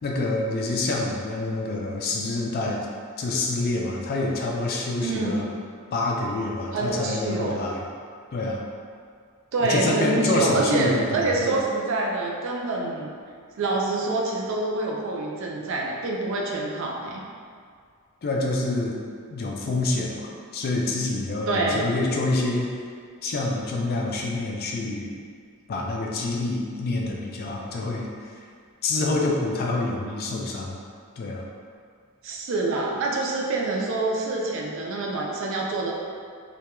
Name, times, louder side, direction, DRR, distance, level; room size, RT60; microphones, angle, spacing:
voice 1, 0.0-2.8 3.2-5.5 5.9-7.8 8.3-8.6 9.6-11.6 18.2-19.0 19.3-22.7 23.2-25.1 25.7-28.4 28.8-30.8 31.2-31.4, left 2 dB, 45° left, -1 dB, 0.3 m, -27 dB
voice 2, 5.0-5.4 6.7-7.6 9.5-13.1 13.6-17.2 21.5-21.9 32.2-35.9, right 3 dB, 60° right, -1 dB, 0.4 m, -26 dB
2.2 x 2.2 x 2.9 m, 2.1 s
head